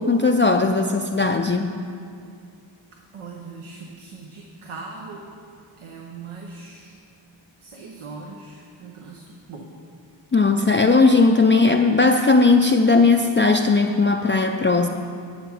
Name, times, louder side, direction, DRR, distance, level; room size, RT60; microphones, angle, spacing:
voice 1, 0.0-1.8 10.3-14.9, left 3 dB, 25° left, 3 dB, 0.4 m, -17 dB
voice 2, 3.1-5.2 5.8-7.0 7.6-9.7, right 4 dB, 85° right, 0 dB, 1.1 m, -40 dB
11.0 x 8.0 x 4.9 m, 2.4 s
wide cardioid pair, 65°, 50 cm